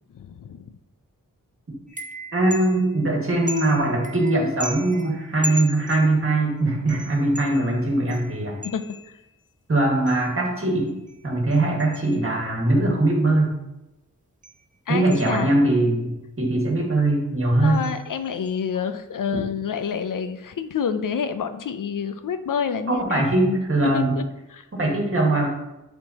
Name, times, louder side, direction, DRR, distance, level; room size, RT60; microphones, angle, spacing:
voice 1, 0.1-0.7 8.7-8.8 14.9-15.6 17.6-23.3 23.9-24.2 24.5-24.7, left 7 dB, 70° left, 10 dB, 0.5 m, -28 dB
sound 1, 1.9-3.0 3.5-6.4 6.9-9.3 10.1-10.4 10.9-12.6 14.4-14.6 15.1-15.9 17.7-18.0 18.2-18.6, equal, 25° right, 0.7 m, -38 dB
voice 2, 2.3-8.6 9.7-10.9 11.2-13.5 14.9-17.8 22.9-24.2 24.7-25.5, right 2 dB, 40° right, -1 dB, 1.6 m, -21 dB
7.7 x 4.4 x 2.8 m, 0.95 s
wide cardioid pair, 65°, 33 cm